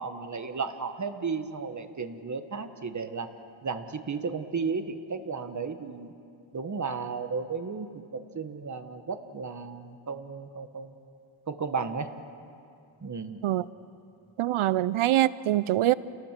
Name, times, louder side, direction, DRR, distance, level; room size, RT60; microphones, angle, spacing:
voice 1, 0.0-3.3 3.6-6.1 6.5-10.9 11.5-12.1 13.0-13.4, right 5 dB, 35° right, 8 dB, 1.4 m, -34 dB
voice 2, 14.4-15.9, right 14 dB, 75° right, 17 dB, 0.7 m, -24 dB
28.5 x 19.0 x 7.5 m, 2.5 s
wide cardioid pair, 125°, 49 cm